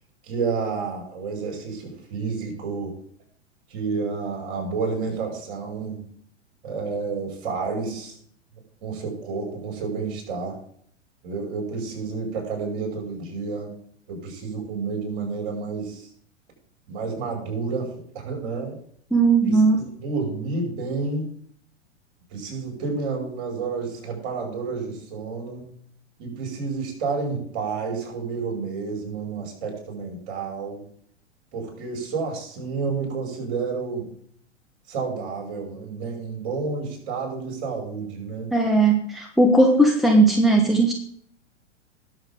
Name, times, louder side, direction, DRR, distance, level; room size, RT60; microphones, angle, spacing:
voice 1, 0.2-2.9 3.7-6.0 6.6-8.2 8.8-10.6 11.2-13.7 14.1-16.1 16.9-18.8 19.4-19.6 20.0-21.4 22.3-25.7 26.2-30.9 31.5-34.1 34.9-38.5, right 4 dB, 45° right, 2 dB, 5.8 m, -30 dB
voice 2, 19.1-19.8 38.5-40.9, right 2 dB, ahead, 2 dB, 1.1 m, -17 dB
20.0 x 7.2 x 3.8 m, 0.63 s
figure-of-eight pair, 100°, 36 cm